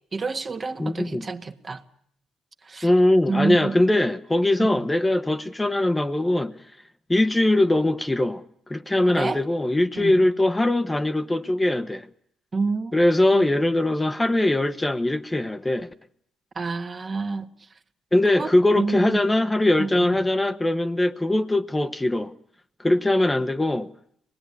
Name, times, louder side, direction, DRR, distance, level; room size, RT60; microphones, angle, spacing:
voice 1, 0.1-1.8 2.6-2.9 3.3-3.7 4.6-4.9 9.1-9.4 9.9-10.2 12.5-13.0 13.3-13.5 16.5-17.5 18.3-19.2 19.8-20.3, right 4 dB, 40° right, 1.7 m, -29 dB
voice 2, 0.8-1.3 2.8-6.5 7.1-8.4 8.7-12.1 12.9-15.9 18.1-22.3 22.8-23.9, left 1 dB, 15° left, 1.2 m, -21 dB
25.0 x 19.5 x 9.8 m
supercardioid pair, 60°, 0 cm